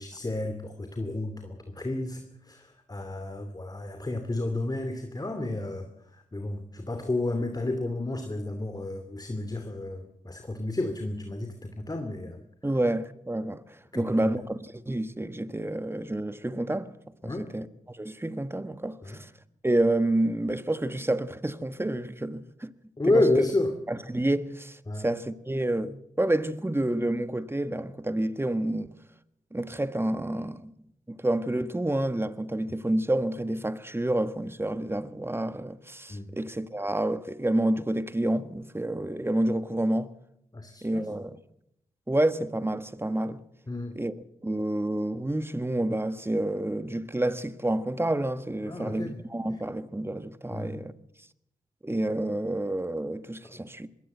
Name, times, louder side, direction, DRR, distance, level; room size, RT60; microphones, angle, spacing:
voice 1, 0.0-12.4 13.9-14.4 17.2-17.5 19.0-19.2 23.0-23.8 24.9-25.1 36.1-36.3 40.5-41.2 43.7-44.0 48.6-49.2 50.5-50.8, left 2 dB, 25° left, 2.7 m, -31 dB
voice 2, 12.6-17.0 17.2-19.3 19.6-22.7 23.0-23.3 23.9-28.9 29.5-30.7 31.1-40.1 40.8-41.4 42.1-43.4 44.0-44.1 44.4-50.9 51.8-53.9, right 1 dB, 15° right, 1.5 m, -29 dB
21.0 x 17.5 x 7.9 m
supercardioid pair, 45°, 14 cm